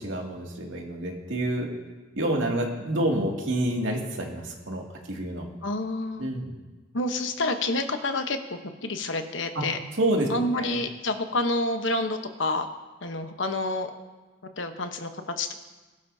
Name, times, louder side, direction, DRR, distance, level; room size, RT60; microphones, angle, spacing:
voice 1, 0.0-1.7 2.2-4.8 5.1-5.4 6.2-6.5 9.5-9.6 10.0-10.3 10.6-10.8, right 1 dB, 80° right, -1 dB, 2.4 m, -28 dB
voice 2, 5.6-6.3 6.9-9.8 10.3-12.7 13.0-13.9 14.6-15.5, left 2 dB, 70° left, 6 dB, 1.1 m, -28 dB
22.0 x 12.0 x 2.8 m, 1.3 s
head